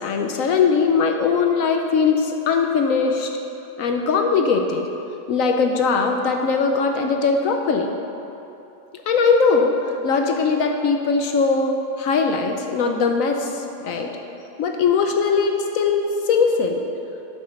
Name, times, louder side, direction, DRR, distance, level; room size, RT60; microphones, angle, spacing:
voice 1, 0.0-3.3 3.8-4.9 5.3-7.9 8.9-9.8 10.0-14.1 14.6-16.8, left 5 dB, 65° left, 4 dB, 0.9 m, -20 dB
8.1 x 6.7 x 5.2 m, 2.9 s
omnidirectional pair, 1.7 m